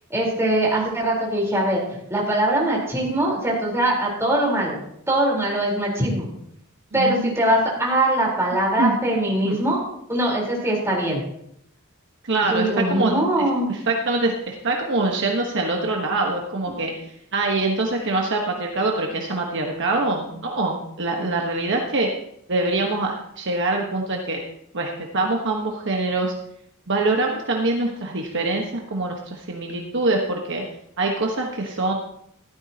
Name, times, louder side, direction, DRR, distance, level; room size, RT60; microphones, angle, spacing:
voice 1, 0.1-1.8 2.1-4.8 5.1-6.3 6.9-9.8 10.1-11.2 12.5-13.8, right 1 dB, 10° right, -4 dB, 4.0 m, -22 dB
voice 2, 6.9-7.3 8.8-9.0 9.4-9.6 12.2-16.9 17.3-22.1 22.5-24.4 24.7-26.3 26.9-30.6 31.0-31.9, right 2 dB, 55° right, 1 dB, 1.3 m, -24 dB
15.0 x 12.5 x 2.9 m, 0.73 s
head